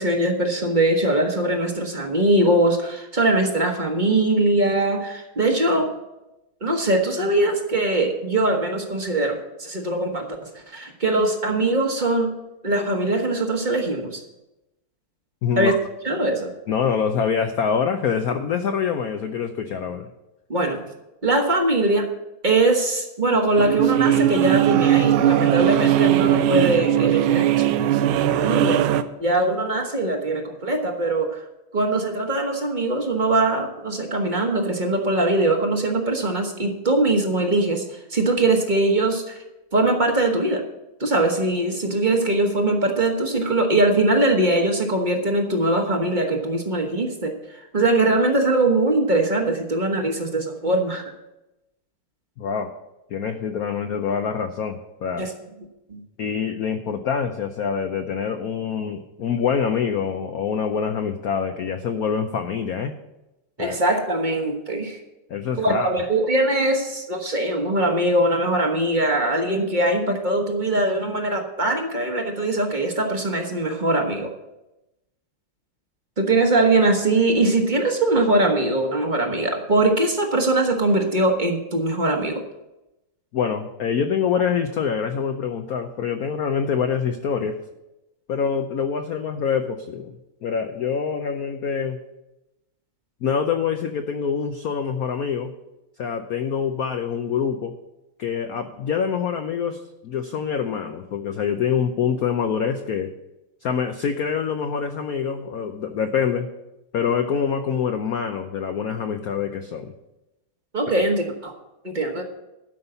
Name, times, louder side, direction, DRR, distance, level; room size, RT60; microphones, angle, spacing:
voice 1, 0.0-5.9 6.6-12.3 12.6-14.2 15.6-15.7 16.0-16.5 20.5-20.8 21.2-22.1 22.4-27.7 28.2-28.8 29.2-31.4 31.7-39.4 39.7-40.6 41.0-51.0 55.2-55.3 55.9-56.0 63.6-65.0 65.6-74.3 76.2-82.4 110.7-111.5 111.8-112.2, right 2 dB, 30° right, 3 dB, 1.0 m, -21 dB
voice 2, 15.4-15.8 16.7-20.1 52.4-52.7 53.1-55.3 56.2-62.9 63.6-63.8 65.3-65.9 83.3-87.6 88.3-92.0 93.2-95.5 96.0-97.7 98.2-103.1 103.6-106.5 106.9-109.9 111.0-111.1, left 7 dB, 75° left, 7 dB, 0.8 m, -25 dB
sound 1, 23.6-29.0, right 12 dB, 80° right, 1.4 m, -19 dB
12.5 x 5.5 x 7.9 m, 0.96 s
omnidirectional pair, 2.3 m